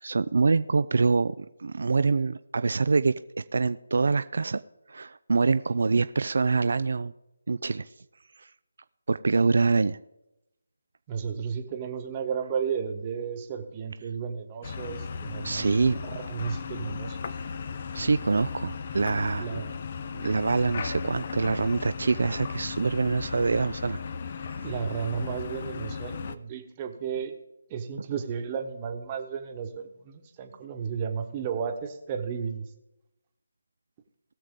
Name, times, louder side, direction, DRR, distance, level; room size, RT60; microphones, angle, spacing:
voice 1, 0.0-3.1 3.5-4.6 4.9-7.1 7.5-7.9 8.4-8.5 9.1-10.0 15.4-16.0 17.9-19.5 20.1-24.0 24.5-24.7, right 4 dB, 65° right, 12 dB, 0.4 m, -25 dB
voice 2, 11.1-15.7 16.0-17.2 19.4-19.7 24.6-27.4 27.7-32.6, right 6 dB, 20° right, 5 dB, 1.1 m, -33 dB
sound 1, 14.6-26.4, left 5 dB, 40° left, 0.6 m, -36 dB
19.5 x 6.6 x 3.7 m, 0.92 s
figure-of-eight pair, 160°, 0 cm